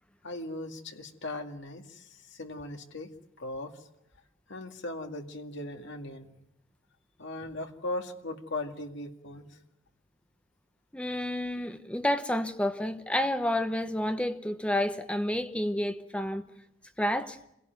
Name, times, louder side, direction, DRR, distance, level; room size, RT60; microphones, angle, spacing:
voice 1, 0.2-3.1 3.4-3.8 4.5-6.3 7.2-9.6, left 2 dB, 60° left, 2.2 m, -38 dB
voice 2, 10.9-16.4 17.0-17.4, left 1 dB, 5° left, 0.9 m, -30 dB
26.5 x 17.5 x 9.3 m
head